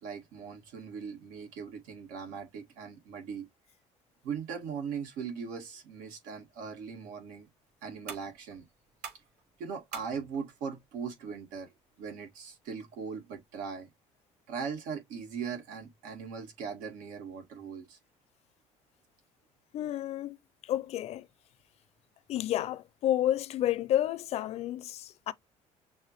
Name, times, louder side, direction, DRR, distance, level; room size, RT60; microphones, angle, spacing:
voice 1, 0.0-3.5 4.2-7.5 7.8-8.7 9.6-11.7 12.0-13.9 14.5-18.0, right 6 dB, 85° right, 1.8 m, -39 dB
sound 1, 6.5-13.5, right 7 dB, 70° right, 3.4 m, -51 dB
voice 2, 19.7-20.4 20.6-21.3 22.3-25.3, left 12 dB, 55° left, 0.5 m, -30 dB
6.4 x 2.5 x 3.0 m
cardioid pair, 135°, 13 cm